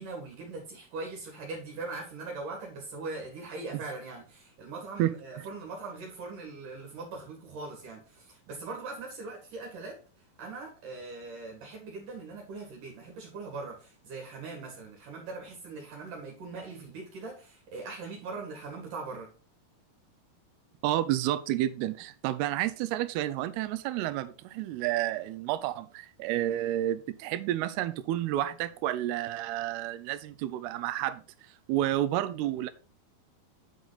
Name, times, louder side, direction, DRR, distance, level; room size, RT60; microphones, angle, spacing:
voice 1, 0.0-10.0 10.4-19.3, right 3 dB, 60° right, 3.1 m, -41 dB
voice 2, 20.8-31.2 31.7-32.7, right 13 dB, 85° right, 2.6 m, -30 dB
9.3 x 4.7 x 4.0 m
omnidirectional pair, 4.6 m